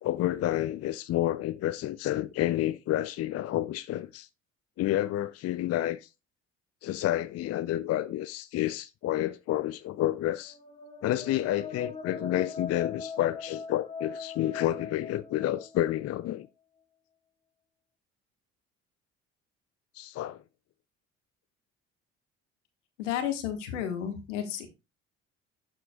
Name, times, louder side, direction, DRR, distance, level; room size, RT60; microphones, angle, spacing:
voice 1, 0.0-4.3 4.8-6.1 6.8-10.5 11.0-16.5 20.0-20.4, left 13 dB, 45° left, 0.5 m, -29 dB
sound 1, 10.4-16.1, left 5 dB, 15° left, 1.7 m, -41 dB
voice 2, 23.0-24.7, left 9 dB, 80° left, 1.5 m, -32 dB
12.0 x 4.5 x 2.3 m
hypercardioid pair, 55°, 36 cm